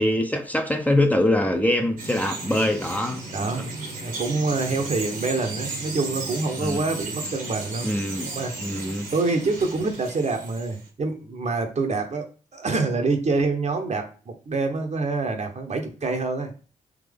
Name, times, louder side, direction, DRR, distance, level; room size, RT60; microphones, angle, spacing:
voice 1, 0.0-3.2 3.5-3.6 6.6-6.8 7.8-8.3 8.6-9.1, left 1 dB, 10° left, 0.7 m, -23 dB
Bird vocalization bird call bird song, 2.0-10.9, right 3 dB, 70° right, 1.2 m, -35 dB
voice 2, 3.3-7.9 8.2-12.3 12.5-16.5, right 3 dB, 50° right, 0.9 m, -26 dB
3.7 x 2.8 x 3.5 m
supercardioid pair, 45°, 15 cm